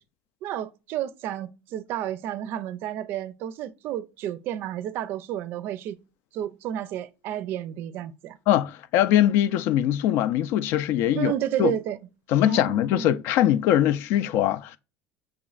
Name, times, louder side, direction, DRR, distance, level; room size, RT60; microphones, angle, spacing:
voice 1, 0.4-6.0 6.3-8.4 11.1-12.0 12.4-13.1, right 11 dB, 55° right, 0.4 m, -31 dB
voice 2, 8.5-11.3 11.6-11.7 12.3-14.8, left 12 dB, 65° left, 0.3 m, -22 dB
6.0 x 3.0 x 2.3 m
supercardioid pair, 120°, 4 cm